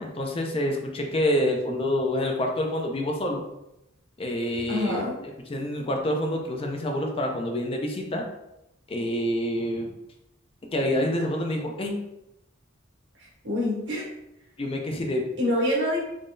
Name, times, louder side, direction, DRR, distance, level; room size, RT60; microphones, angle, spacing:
voice 1, 0.0-3.4 4.2-5.0 5.5-8.2 8.9-9.9 10.7-11.9 14.6-15.3, left 1 dB, 30° left, 2 dB, 0.4 m, -27 dB
voice 2, 4.7-5.2 13.2-14.0 15.4-16.0, left 1 dB, 65° right, -5 dB, 1.5 m, -26 dB
3.6 x 3.2 x 2.6 m, 0.89 s
head